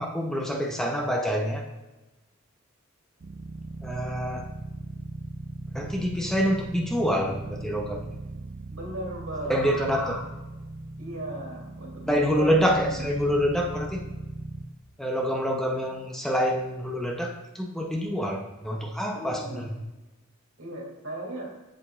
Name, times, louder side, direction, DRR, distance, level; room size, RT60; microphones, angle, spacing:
voice 1, 0.0-1.7 3.8-4.5 5.7-8.1 9.5-10.3 12.1-14.0 15.0-19.7, equal, ahead, 1 dB, 0.5 m, -26 dB
sound 1, 3.2-14.7, right 2 dB, 45° right, 0.4 m, -39 dB
voice 2, 8.7-9.8 11.0-13.1 19.1-19.7 20.6-21.5, right 1 dB, 65° right, -1 dB, 2.3 m, -37 dB
8.1 x 7.4 x 2.3 m, 1.1 s
head